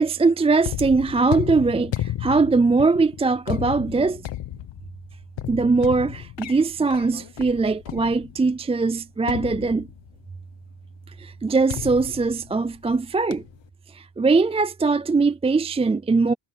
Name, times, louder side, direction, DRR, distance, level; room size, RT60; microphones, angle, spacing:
voice 1, 0.0-4.2 5.5-9.9 11.2-13.4 13.9-16.3, right 4 dB, 15° right, 0.3 m, -21 dB
sound 1, 0.6-8.6 9.3-10.3 11.7-13.0 13.3-13.7, left 13 dB, 80° left, 1.2 m, -33 dB
wide cardioid pair, 150°, 44 cm